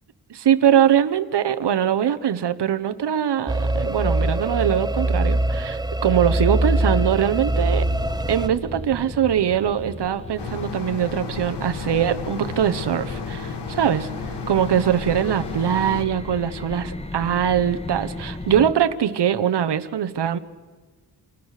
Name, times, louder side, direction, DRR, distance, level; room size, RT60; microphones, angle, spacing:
voice 1, 0.3-7.9 8.3-14.1 14.5-20.4, right 9 dB, 80° right, 1.1 m, -22 dB
sound 1, 3.5-8.5, right 1 dB, 10° right, 0.7 m, -23 dB
sound 2, 6.2-18.7, left 1 dB, 15° left, 1.7 m, -36 dB
sound 3, 10.4-16.0, left 5 dB, 80° left, 2.0 m, -33 dB
30.0 x 27.5 x 6.6 m
wide cardioid pair, 135°, 40 cm